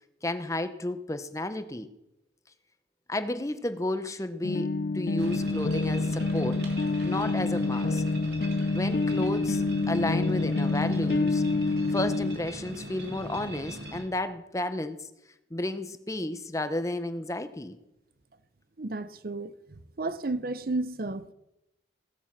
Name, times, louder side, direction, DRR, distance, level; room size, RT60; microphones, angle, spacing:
voice 1, 0.2-1.9 3.1-6.7 7.0-8.0 8.7-11.4 11.9-15.1 15.5-17.8, left 1 dB, 15° left, 0.8 m, -32 dB
sound 1, 4.4-12.4, left 3 dB, 55° left, 0.5 m, -27 dB
sound 2, 5.2-14.0, right 1 dB, 70° right, 3.1 m, -40 dB
voice 2, 18.8-21.3, right 2 dB, 50° right, 0.7 m, -33 dB
17.0 x 11.0 x 7.4 m
head